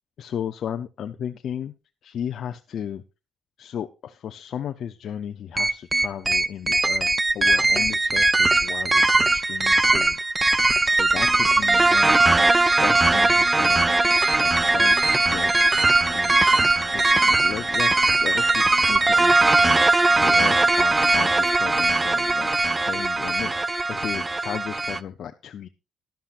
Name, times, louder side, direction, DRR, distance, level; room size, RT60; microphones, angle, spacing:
voice 1, 0.2-1.7 2.0-3.0 3.6-7.1 7.3-12.5 12.8-14.0 14.4-15.8 16.1-22.5 22.8-25.7, left 9 dB, 65° left, 6 dB, 0.8 m, -35 dB
sound 1, 5.6-25.0, right 2 dB, 20° right, 0.6 m, -20 dB
sound 2, 11.1-22.5, left 2 dB, 20° left, 1.2 m, -44 dB
13.0 x 12.0 x 2.6 m, 0.29 s
cardioid pair, 90°, 0 cm